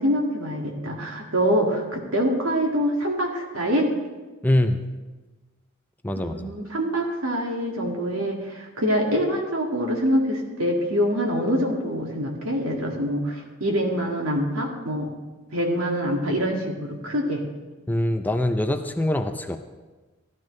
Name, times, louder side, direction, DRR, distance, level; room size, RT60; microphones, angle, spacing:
voice 1, 0.0-3.9 6.1-15.1 15.5-17.4, equal, 85° right, 0 dB, 2.1 m, -25 dB
voice 2, 4.4-4.8 6.0-6.5 17.9-19.6, left 1 dB, 10° left, 6 dB, 0.5 m, -23 dB
15.0 x 12.0 x 3.2 m, 1.3 s
head